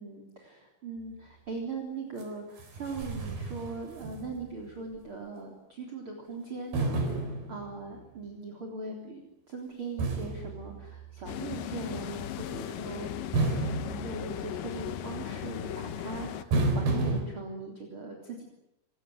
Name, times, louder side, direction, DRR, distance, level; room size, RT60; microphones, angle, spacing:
voice 1, 0.0-7.0 7.5-13.1 13.6-18.5, right 3 dB, 35° right, 0 dB, 4.2 m, -40 dB
sound 1, 2.2-2.3 2.6-4.6 4.9-5.0 6.7-8.1 10.0-11.4 13.3-14.9 16.5-17.2, right 3 dB, 80° right, 6.0 m, -31 dB
sound 2, 11.3-16.4, left 10 dB, 70° left, 2.6 m, -37 dB
28.0 x 17.5 x 9.4 m, 0.86 s
omnidirectional pair, 4.4 m